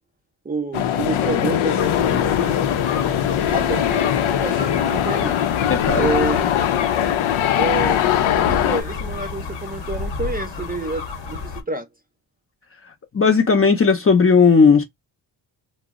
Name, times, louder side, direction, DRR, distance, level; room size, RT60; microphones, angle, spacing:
voice 1, 0.4-2.6 3.5-5.5 5.9-6.5 7.6-8.0 8.3-11.9, right 3 dB, 20° right, 0.5 m, -28 dB
sound 1, 0.7-8.8, left 10 dB, 90° left, 0.6 m, -21 dB
sound 2, 1.8-11.6, left 5 dB, 65° left, 0.9 m, -30 dB
voice 2, 5.7-6.1 13.1-14.8, left 5 dB, 30° left, 0.6 m, -15 dB
2.7 x 2.0 x 3.5 m
wide cardioid pair, 125°, 47 cm